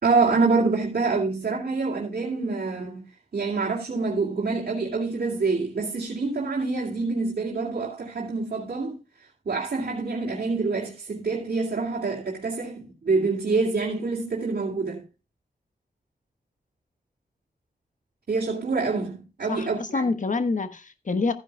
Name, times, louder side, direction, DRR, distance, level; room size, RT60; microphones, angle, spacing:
voice 1, 0.0-3.0 3.3-9.0 9.4-15.0 18.3-20.0, right 4 dB, 60° right, 2.6 m, -26 dB
voice 2, 19.5-21.3, left 3 dB, 50° left, 1.3 m, -26 dB
14.0 x 10.5 x 2.3 m
wide cardioid pair, 75°, 17 cm